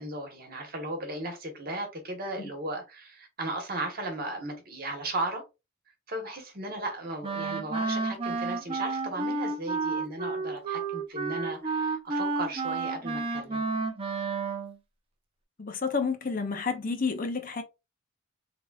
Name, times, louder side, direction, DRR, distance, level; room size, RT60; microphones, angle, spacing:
voice 1, 0.0-5.5 6.1-13.6, right 2 dB, 45° right, 1.2 m, -36 dB
Wind instrument woodwind instrument, 7.2-14.8, right 3 dB, 25° right, 0.6 m, -31 dB
voice 2, 15.6-17.6, left 4 dB, 40° left, 0.6 m, -30 dB
3.8 x 3.4 x 2.3 m
head